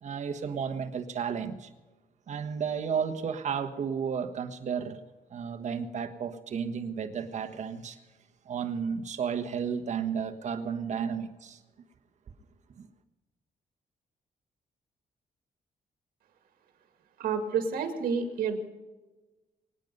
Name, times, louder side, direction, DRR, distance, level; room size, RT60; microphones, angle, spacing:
voice 1, 0.0-1.7 2.3-5.0 5.3-8.0 8.4-11.6 12.7-12.9, right 7 dB, 55° right, 7 dB, 1.4 m, -33 dB
voice 2, 17.2-18.6, right 6 dB, 85° right, 6 dB, 2.2 m, -29 dB
24.5 x 9.3 x 5.4 m, 1.2 s
cardioid pair, 115°, 15 cm